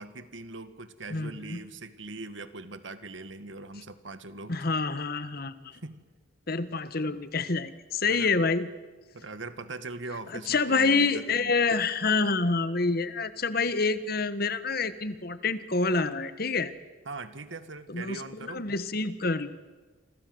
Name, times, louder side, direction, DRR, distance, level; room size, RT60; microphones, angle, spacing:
voice 1, 0.0-4.7 5.7-6.0 8.1-8.3 9.1-11.5 17.1-18.7, right 3 dB, 70° right, 11 dB, 1.8 m, -41 dB
voice 2, 1.1-1.6 4.5-5.8 6.5-8.7 10.3-16.7 17.9-19.5, left 4 dB, 50° left, 13 dB, 1.4 m, -27 dB
29.0 x 25.0 x 7.9 m, 1.3 s
head